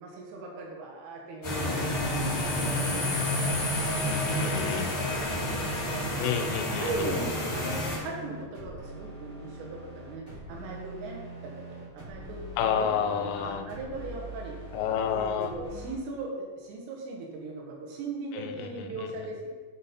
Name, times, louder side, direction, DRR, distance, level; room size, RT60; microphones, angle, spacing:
voice 1, 0.0-2.1 2.6-6.4 6.8-12.9 13.4-14.6 15.1-19.5, right 3 dB, 80° right, -1 dB, 3.7 m, -39 dB
sound 1, 1.4-8.0, left 1 dB, 50° left, 1.4 m, -29 dB
sound 2, 1.9-15.9, right 2 dB, 55° right, 0.6 m, -43 dB
voice 2, 4.3-4.9 6.2-7.1 12.6-13.6 14.7-15.5 18.3-19.1, left 8 dB, 90° left, 6 dB, 3.3 m, -30 dB
10.5 x 3.9 x 4.2 m, 1.4 s
omnidirectional pair, 5.7 m